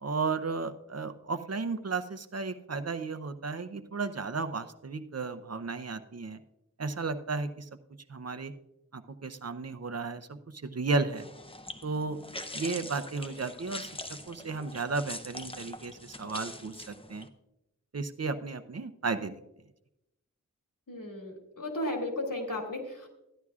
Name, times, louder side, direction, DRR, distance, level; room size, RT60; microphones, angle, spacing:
voice 1, 0.0-6.4 6.8-7.7 8.1-8.5 8.9-11.3 11.8-12.2 12.5-17.3 17.9-19.3, right 4 dB, 50° right, 10 dB, 0.7 m, -34 dB
sound 1, 11.1-17.3, left 1 dB, 15° left, 0.8 m, -43 dB
voice 2, 20.9-23.1, left 1 dB, 85° left, 0 dB, 2.5 m, -35 dB
14.5 x 11.0 x 2.4 m, 0.87 s
wide cardioid pair, 50°, 32 cm